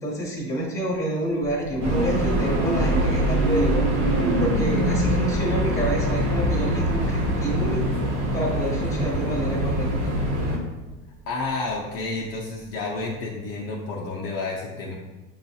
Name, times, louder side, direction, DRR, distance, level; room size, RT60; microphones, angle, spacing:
voice 1, 0.0-3.9 4.4-7.8 8.3-10.1, right 1 dB, 10° left, -4 dB, 1.0 m, -28 dB
sound 1, 1.4-12.8, right 2 dB, 40° right, 0.5 m, -31 dB
sound 2, 1.8-10.6, equal, 70° right, 1.1 m, -24 dB
voice 2, 11.3-14.9, left 3 dB, 40° left, -3 dB, 0.6 m, -30 dB
6.9 x 2.3 x 2.7 m, 1.1 s
supercardioid pair, 145°, 36 cm